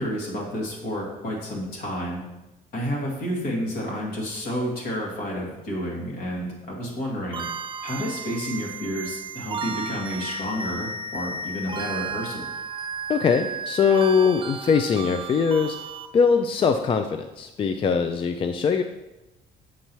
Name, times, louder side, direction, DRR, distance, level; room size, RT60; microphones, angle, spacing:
voice 1, 0.0-2.2 2.7-7.4 7.8-12.5, equal, 70° left, -2 dB, 2.2 m, -30 dB
sound 1, 7.3-16.1, right 4 dB, 30° right, 0.5 m, -34 dB
voice 2, 13.1-15.8 16.1-18.8, left 6 dB, 30° left, 7 dB, 0.4 m, -21 dB
7.4 x 5.4 x 3.1 m, 0.98 s
cardioid pair, 110°, 17 cm